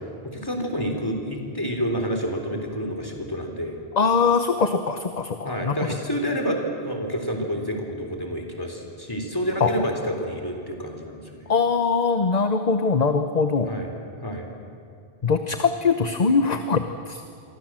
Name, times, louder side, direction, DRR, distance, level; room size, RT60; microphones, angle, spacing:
voice 1, 0.2-3.8 5.4-11.5 13.6-13.9 14.2-14.5, equal, 20° left, 3 dB, 3.8 m, -28 dB
voice 2, 4.0-5.8 9.6-9.7 11.5-13.7 15.2-17.2, left 5 dB, 40° left, 8 dB, 1.1 m, -22 dB
27.5 x 24.0 x 7.6 m, 2.4 s
omnidirectional pair, 1.1 m